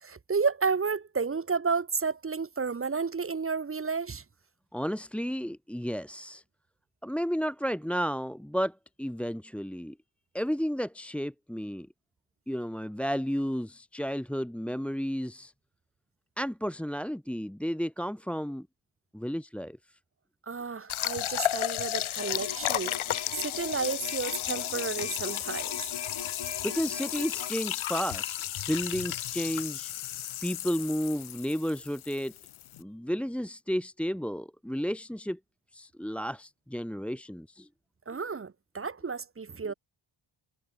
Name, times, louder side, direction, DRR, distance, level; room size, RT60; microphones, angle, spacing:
voice 1, 0.0-4.2 20.5-23.0 23.4-25.8 38.1-39.7, right 5 dB, 25° right, 1.0 m, -31 dB
voice 2, 4.7-6.4 7.0-10.0 10.3-11.9 12.5-15.5 16.4-18.7 19.1-19.8 26.6-28.4 28.7-29.9 30.4-32.3 32.8-35.4 35.7-37.7, equal, ahead, 1.6 m, -32 dB
sound 1, 20.9-32.8, left 12 dB, 80° left, 0.8 m, -34 dB
sound 2, 22.2-27.5, left 6 dB, 55° left, 7.4 m, -41 dB
wide cardioid pair, 130°, 48 cm